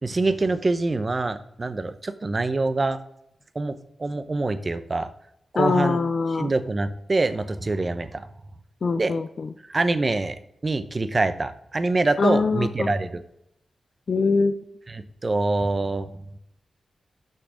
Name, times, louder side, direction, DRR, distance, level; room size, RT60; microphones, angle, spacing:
voice 1, 0.0-3.0 3.5-5.1 5.5-6.0 6.3-8.3 9.0-9.1 9.7-13.2 14.9-16.1, right 2 dB, 40° right, 12 dB, 0.8 m, -25 dB
voice 2, 5.6-6.5 8.8-9.5 12.2-12.9 14.1-14.5, left 4 dB, 65° left, 10 dB, 0.4 m, -23 dB
6.6 x 6.0 x 4.9 m, 0.77 s
cardioid pair, 45°, 0 cm